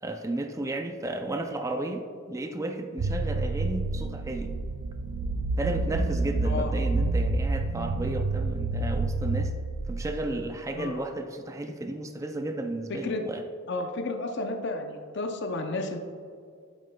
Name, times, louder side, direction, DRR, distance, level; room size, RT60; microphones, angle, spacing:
voice 1, 0.0-4.5 5.6-9.5 9.9-13.4, right 2 dB, 15° right, 5 dB, 0.4 m, -33 dB
sound 1, 3.0-10.5, right 2 dB, 80° right, 0.4 m, -29 dB
voice 2, 12.9-13.2 13.7-16.0, left 2 dB, 55° left, 4 dB, 0.6 m, -32 dB
8.5 x 7.4 x 2.2 m, 2.2 s
head